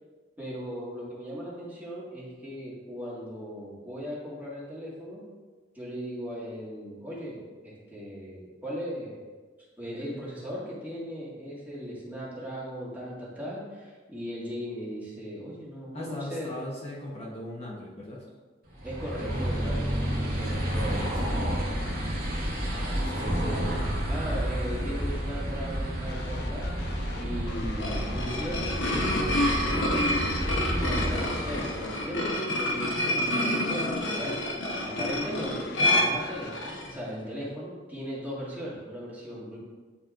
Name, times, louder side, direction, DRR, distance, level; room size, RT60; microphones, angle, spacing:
voice 1, 0.4-5.2 5.8-9.2 9.8-16.5 18.8-21.8 23.1-23.8 24.1-26.7 27.2-33.8 34.1-39.6, equal, 10° right, -7 dB, 1.8 m, -38 dB
voice 2, 15.9-18.3 20.7-21.2 22.7-23.5, left 1 dB, 35° left, -5 dB, 0.9 m, -40 dB
sound 1, 18.7-32.2, equal, 55° right, 1.6 m, -30 dB
sound 2, 26.1-36.6, left 4 dB, 60° left, 0.4 m, -44 dB
sound 3, 27.6-36.9, left 1 dB, 80° left, 1.0 m, -28 dB
10.0 x 4.3 x 2.5 m, 1.4 s
head